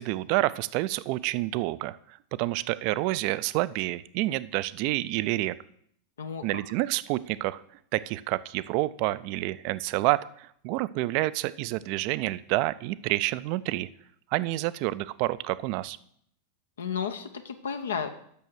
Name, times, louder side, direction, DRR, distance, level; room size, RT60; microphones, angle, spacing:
voice 1, 0.0-2.0 2.4-5.5 6.4-7.6 7.9-13.9 14.3-16.0, right 18 dB, 45° right, 17 dB, 0.4 m, -28 dB
voice 2, 6.2-6.6 16.8-18.1, left 7 dB, 65° left, 8 dB, 0.7 m, -33 dB
8.4 x 6.3 x 6.3 m, 0.67 s
figure-of-eight pair, 90°, 0 cm